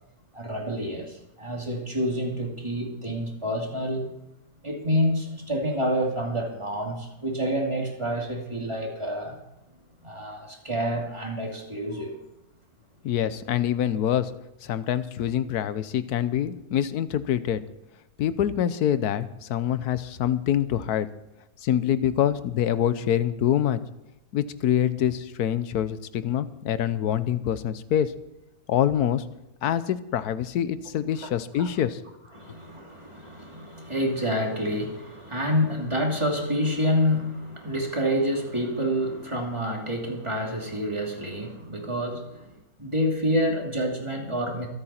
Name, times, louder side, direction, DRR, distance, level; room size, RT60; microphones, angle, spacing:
voice 1, 0.3-4.1 4.6-9.4 10.0-12.2 31.2-31.3 31.6-31.7 32.3-42.5 42.8-44.7, equal, 20° right, 0 dB, 2.6 m, -28 dB
voice 2, 13.0-14.3 14.6-17.6 18.2-21.1 21.6-23.8 24.3-28.1 28.7-29.2 29.6-32.0, left 10 dB, 75° left, 14 dB, 1.3 m, -25 dB
24.5 x 8.9 x 4.4 m, 0.91 s
omnidirectional pair, 1.7 m